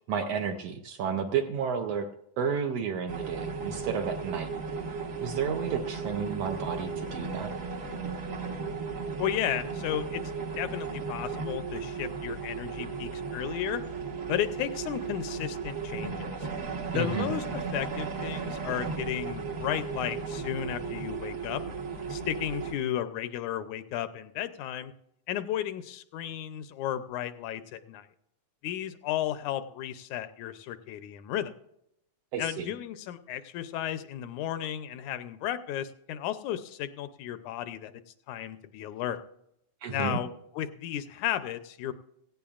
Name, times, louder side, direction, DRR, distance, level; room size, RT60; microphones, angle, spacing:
voice 1, 0.1-2.1 2.4-4.9 5.2-7.5 16.9-17.3 32.3-32.7 39.8-40.2, right 6 dB, 70° right, 5 dB, 1.6 m, -32 dB
sound 1, 3.1-22.7, right 5 dB, 50° right, 1.0 m, -35 dB
voice 2, 9.2-13.8 14.3-16.5 16.9-21.6 22.1-24.9 25.3-28.1 28.6-31.5 32.4-37.9 38.3-39.2 39.9-41.9, left 11 dB, 80° left, 11 dB, 2.0 m, -34 dB
17.0 x 16.0 x 2.5 m, 0.77 s
omnidirectional pair, 3.6 m